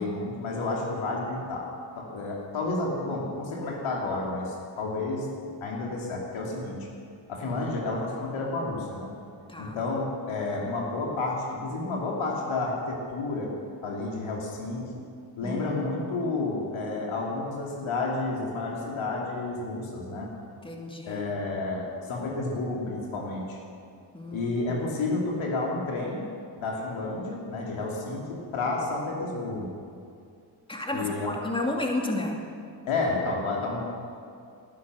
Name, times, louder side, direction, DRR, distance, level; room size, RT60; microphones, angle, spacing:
voice 1, 0.0-1.7 2.0-5.3 5.6-6.9 7.3-9.1 9.6-13.5 13.8-14.9 15.4-20.3 21.0-23.6 24.3-26.2 26.6-29.7 30.9-31.4 32.9-33.8, left 3 dB, 85° left, -2 dB, 3.0 m, -30 dB
voice 2, 15.4-15.8 20.6-21.3 24.1-24.7 30.7-32.4, left 2 dB, 10° left, 0 dB, 2.7 m, -32 dB
19.0 x 10.5 x 6.5 m, 2.4 s
cardioid pair, 60°, 46 cm